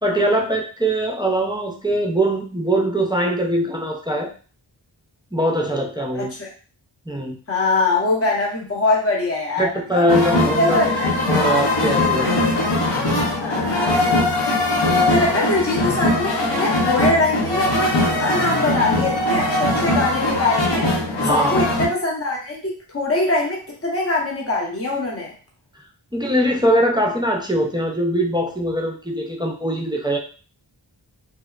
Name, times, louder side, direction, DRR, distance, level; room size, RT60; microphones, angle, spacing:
voice 1, 0.0-4.3 5.3-6.3 7.1-7.4 9.6-10.9 11.3-12.5 21.2-21.6 26.1-30.2, right 1 dB, 10° right, 0 dB, 0.4 m, -21 dB
voice 2, 6.1-6.5 7.5-10.0 10.4-11.1 13.4-14.4 15.0-20.9 21.2-25.3, left 2 dB, 30° left, -2 dB, 0.8 m, -23 dB
sound 1, 10.1-21.9, left 2 dB, 65° left, 0.7 m, -20 dB
2.9 x 2.0 x 2.3 m, 0.38 s
wide cardioid pair, 45°, 46 cm